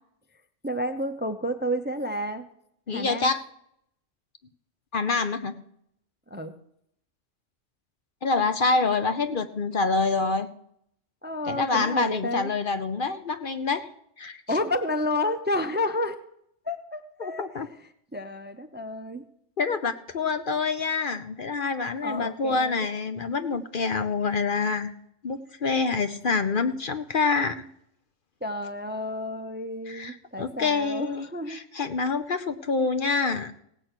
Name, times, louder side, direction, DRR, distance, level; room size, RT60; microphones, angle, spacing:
voice 1, 0.6-2.5 2.9-3.3 6.3-6.6 11.2-12.5 14.5-16.2 16.6-17.5 18.1-19.2 22.0-22.9 28.4-31.6, left 1 dB, 10° right, 9 dB, 0.6 m, -30 dB
voice 2, 2.9-3.4 4.9-5.5 8.2-10.5 11.5-13.8 14.2-14.4 17.2-17.7 19.6-24.9 25.2-27.6 29.9-33.5, left 4 dB, 50° left, 10 dB, 0.8 m, -26 dB
17.0 x 8.4 x 6.0 m, 0.72 s
omnidirectional pair, 1.3 m